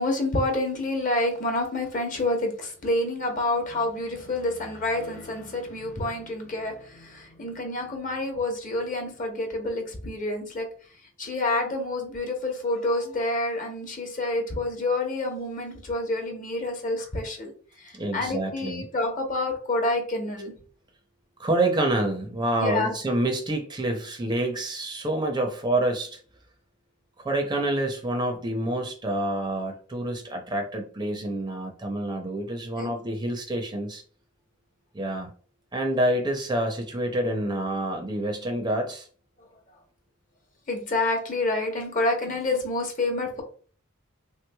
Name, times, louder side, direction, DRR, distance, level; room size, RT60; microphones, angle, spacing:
voice 1, 0.0-10.7 11.2-17.5 17.8-20.5 22.6-22.9 32.7-32.9 40.7-43.4, left 2 dB, 40° left, 3 dB, 0.7 m, -28 dB
voice 2, 17.9-18.9 21.4-26.2 27.2-34.0 34.9-35.3 35.7-39.1, right 1 dB, 20° right, 4 dB, 0.5 m, -27 dB
3.3 x 3.0 x 2.2 m, 0.43 s
head